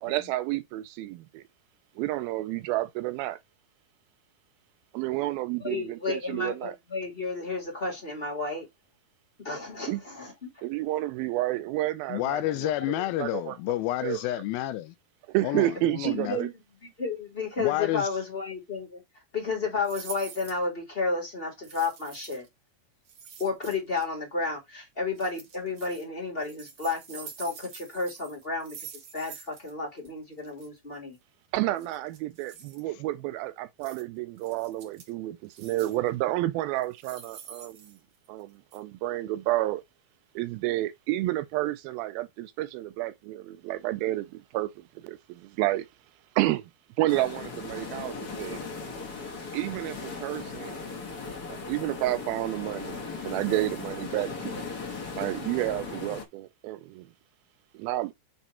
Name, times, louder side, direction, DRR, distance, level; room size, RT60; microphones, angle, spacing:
voice 1, 0.0-1.4 2.0-3.4 4.9-6.7 9.9-10.0 10.6-12.7 13.2-13.6 14.0-14.2 15.3-16.5 31.5-38.0 38.3-39.8 40.4-45.9 46.4-46.7 47.0-48.6 49.5-50.8 51.7-54.6 55.2-57.1 57.7-58.1, right 16 dB, 80° right, 2.3 m, -30 dB
voice 2, 5.6-8.7 9.4-10.6 12.8-12.9 16.0-16.5 16.8-19.0 19.3-22.5 23.4-28.8 29.1-31.2, left 4 dB, 20° left, 2.3 m, -32 dB
voice 3, 12.1-14.9 15.4-16.4 17.6-18.1, left 15 dB, 80° left, 2.4 m, -30 dB
sound 1, 19.8-20.6 21.6-22.5 23.1-24.0 25.2-26.0 26.4-29.7 30.0-30.1 30.4-30.7 31.8-32.8 33.8-34.0 34.4-35.1 35.5-36.1 36.8-38.4 38.7-38.8, right 7 dB, 50° right, 2.2 m, -46 dB
sound 2, 47.1-56.2, left 4 dB, 45° left, 1.2 m, -38 dB
8.1 x 3.5 x 4.3 m
omnidirectional pair, 4.4 m